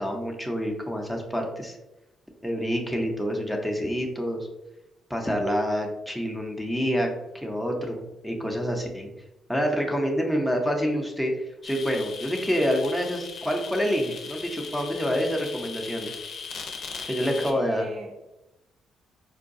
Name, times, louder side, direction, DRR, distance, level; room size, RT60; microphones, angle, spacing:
voice 1, 0.0-1.8 2.4-4.5 5.1-7.1 7.3-9.1 9.5-16.2 17.0-17.8, equal, 5° right, 0.7 m, -27 dB
sound 1, 11.6-17.5, left 5 dB, 55° left, 0.6 m, -38 dB
voice 2, 17.2-18.3, right 2 dB, 60° right, 0.6 m, -36 dB
4.6 x 2.2 x 2.5 m
cardioid pair, 90°, 0 cm